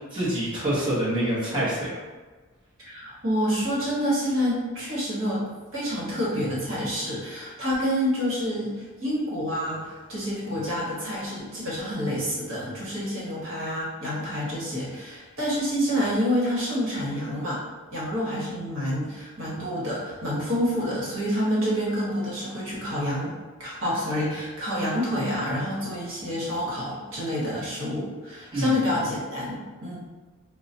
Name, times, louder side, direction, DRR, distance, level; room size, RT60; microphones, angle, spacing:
voice 1, 0.1-2.0 28.5-28.7, right 1 dB, 20° right, -10 dB, 0.9 m, -26 dB
voice 2, 2.8-17.6 17.9-23.3 23.6-30.0, equal, 65° right, -6 dB, 1.1 m, -28 dB
4.6 x 2.0 x 2.7 m, 1.3 s
head